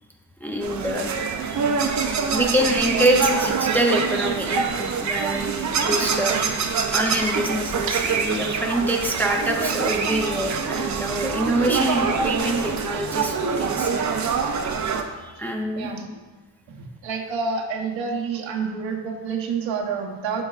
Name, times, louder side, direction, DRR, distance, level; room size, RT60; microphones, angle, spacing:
voice 1, 0.4-1.1 2.3-6.5 6.9-14.0 15.2-15.9, right 1 dB, 5° left, 1 dB, 0.5 m, -25 dB
sound 1, 0.6-15.0, right 5 dB, 40° right, 0.5 m, -25 dB
voice 2, 15.8-16.1 16.7-20.4, right 5 dB, 80° right, 1 dB, 1.0 m, -28 dB
8.1 x 6.4 x 2.4 m, 1.2 s
cardioid pair, 140°, 45 cm